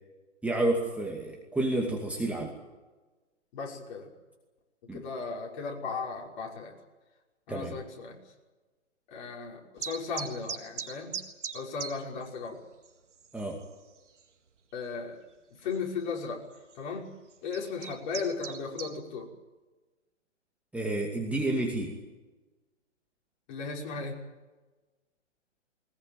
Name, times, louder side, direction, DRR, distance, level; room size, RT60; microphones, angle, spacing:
voice 1, 0.4-2.5 4.9-5.0 7.5-7.8 13.3-13.6 20.7-21.9, right 2 dB, 5° right, -1 dB, 2.4 m, -30 dB
voice 2, 3.5-4.1 4.9-6.7 7.5-8.2 9.1-11.2 11.5-12.6 14.7-15.2 15.5-16.4 16.7-17.1 17.4-19.3 23.5-24.2, left 5 dB, 40° left, -1 dB, 5.9 m, -36 dB
sound 1, 9.8-11.9 12.2-12.3 12.8-12.9 13.2-13.6 14.2-14.3 15.6-15.8 16.5-16.7 17.3-18.9, right 6 dB, 70° right, 3.8 m, -38 dB
21.5 x 20.5 x 9.3 m, 1.2 s
hypercardioid pair, 140°, 37 cm